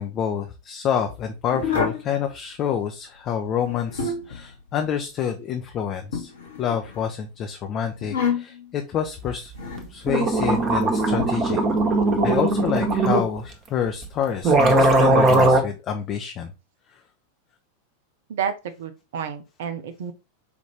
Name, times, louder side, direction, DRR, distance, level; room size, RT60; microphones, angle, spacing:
voice 1, 0.0-6.3 6.6-9.5 9.9-11.6 12.2-16.5, left 8 dB, 35° left, 0.5 m, -28 dB
sound 1, 1.5-2.1 3.6-4.4 6.1-7.0 8.0-8.7 9.5-9.9 11.2-11.3, left 5 dB, 65° left, 1.1 m, -27 dB
sound 2, 9.8-9.9 10.1-13.3 14.0-14.1 14.4-15.6, right 2 dB, 30° right, 1.0 m, -19 dB
voice 2, 18.3-20.1, right 7 dB, 55° right, 0.6 m, -30 dB
5.0 x 2.5 x 3.2 m
figure-of-eight pair, 90°, 0 cm